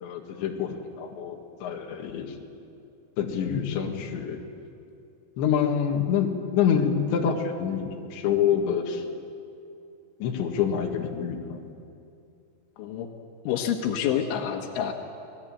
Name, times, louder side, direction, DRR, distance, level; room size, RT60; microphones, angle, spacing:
voice 1, 0.0-2.4 3.2-4.4 5.4-9.0 10.2-11.7, left 8 dB, 75° left, 2 dB, 4.1 m, -26 dB
voice 2, 12.8-13.1 13.5-14.9, left 9 dB, 90° left, 4 dB, 3.9 m, -27 dB
28.0 x 19.5 x 9.0 m, 2.6 s
omnidirectional pair, 5.4 m